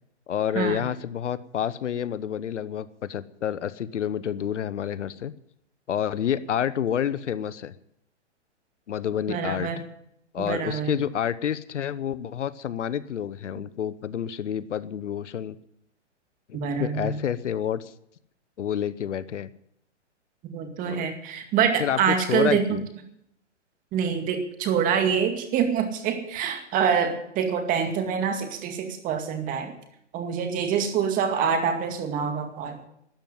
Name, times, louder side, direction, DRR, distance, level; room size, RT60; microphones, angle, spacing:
voice 1, 0.3-5.3 5.9-7.7 8.9-9.7 10.3-15.6 16.5-17.9 18.6-19.5 20.9-21.1 21.8-22.8, left 9 dB, 75° left, 17 dB, 1.0 m, -29 dB
voice 2, 9.3-9.8 10.4-10.9 16.5-17.1 20.4-22.8 23.9-29.7 30.1-32.9, right 7 dB, 20° right, 6 dB, 2.2 m, -26 dB
13.0 x 9.0 x 9.3 m, 0.73 s
hypercardioid pair, 145°, 36 cm